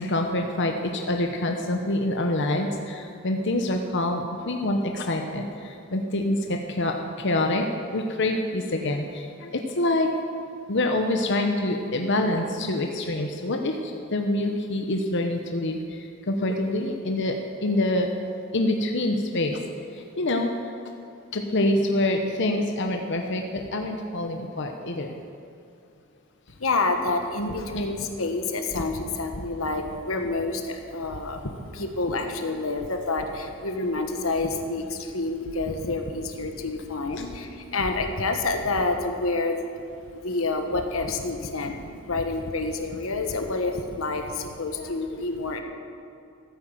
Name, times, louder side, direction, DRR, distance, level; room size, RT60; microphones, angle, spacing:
voice 1, 0.0-10.1 10.7-16.0 16.3-18.1 18.5-19.6 20.2-20.5 21.3-25.2 44.7-44.9, left 1 dB, 60° left, 3 dB, 1.0 m, -26 dB
voice 2, 26.6-39.6 40.1-45.6, left 3 dB, 90° left, 5 dB, 1.4 m, -28 dB
14.0 x 9.3 x 7.5 m, 2.4 s
head